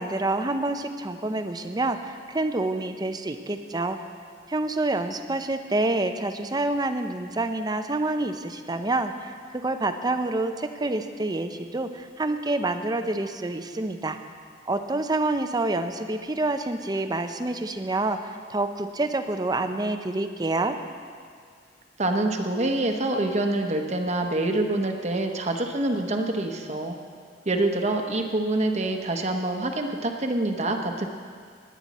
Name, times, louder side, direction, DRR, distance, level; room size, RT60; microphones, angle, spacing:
voice 1, 0.0-4.0 4.5-14.2 14.7-20.8, right 2 dB, 20° right, 7 dB, 0.6 m, -27 dB
voice 2, 22.0-26.9 27.5-31.1, right 2 dB, 40° right, 4 dB, 1.1 m, -26 dB
19.5 x 9.7 x 4.2 m, 2.1 s
head